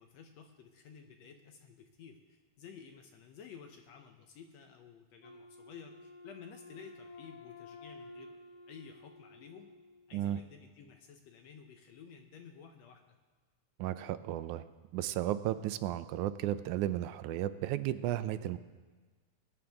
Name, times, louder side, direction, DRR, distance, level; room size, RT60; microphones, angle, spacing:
voice 1, 0.0-8.4 8.7-9.7 10.1-13.2, left 6 dB, 70° left, 5 dB, 1.8 m, -53 dB
Wind instrument woodwind instrument, 5.2-10.2, left 2 dB, 85° left, 0.9 m, -53 dB
voice 2, 13.8-14.6 14.9-18.6, right 13 dB, 80° right, 13 dB, 1.9 m, -34 dB
20.5 x 9.8 x 3.5 m, 1.4 s
omnidirectional pair, 3.5 m